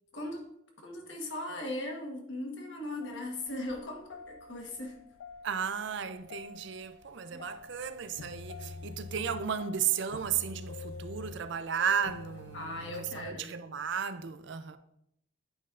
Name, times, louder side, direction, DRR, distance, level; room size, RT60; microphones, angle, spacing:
voice 1, 0.1-0.5 0.8-5.0 7.3-7.5 12.5-13.6, left 1 dB, 60° left, 1.3 m, -39 dB
sound 1, 3.0-13.4, left 3 dB, 90° left, 0.5 m, -47 dB
voice 2, 5.4-14.8, right 7 dB, 55° right, 0.4 m, -34 dB
8.8 x 5.3 x 2.5 m
head